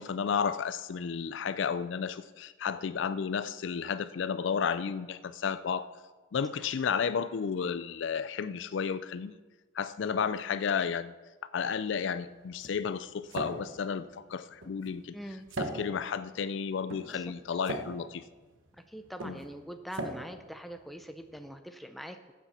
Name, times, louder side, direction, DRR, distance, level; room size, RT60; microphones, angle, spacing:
voice 1, 0.0-5.9 6.3-9.4 9.7-11.1 11.5-15.1 15.6-18.2 19.2-19.4, left 6 dB, 60° left, 15 dB, 0.4 m, -32 dB
sound 1, 11.6-21.5, right 2 dB, 65° right, 1.1 m, -42 dB
voice 2, 15.1-15.5 17.1-17.2 18.9-22.3, equal, ahead, 7 dB, 0.5 m, -43 dB
14.5 x 8.2 x 4.2 m, 1.3 s
head